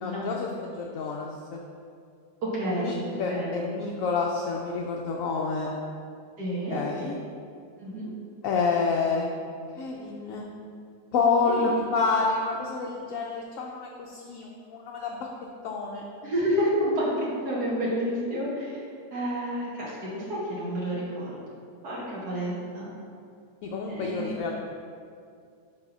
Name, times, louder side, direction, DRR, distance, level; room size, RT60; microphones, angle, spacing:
voice 1, 0.0-0.5 0.7-1.6 2.8-5.7 6.7-7.1 8.4-9.3 9.8-10.4 11.1-15.3 15.6-16.0 23.6-24.5, left 4 dB, 70° left, -1 dB, 0.9 m, -28 dB
voice 2, 2.4-3.0 3.3-3.5 6.4-6.8 7.8-8.1 11.4-11.7 16.2-18.8 19.1-21.4 21.8-22.9 23.9-24.4, equal, 75° right, -7 dB, 1.8 m, -29 dB
4.9 x 4.7 x 5.4 m, 2.3 s
omnidirectional pair, 1.7 m